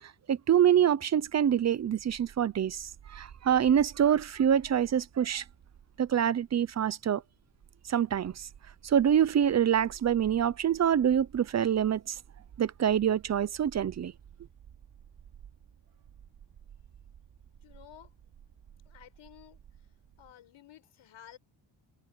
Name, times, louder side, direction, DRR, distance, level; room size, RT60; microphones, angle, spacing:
voice 1, 0.3-5.4 6.0-7.2 7.9-8.5 8.8-12.2 12.6-14.1, right 9 dB, 35° right, 0.7 m, -26 dB
Bark, 1.2-20.3, right 9 dB, 60° right, 4.2 m, -55 dB
voice 2, 17.6-18.1 18.8-19.6 20.2-21.4, left 11 dB, 75° left, 6.6 m, -53 dB
wide cardioid pair, 160°, 47 cm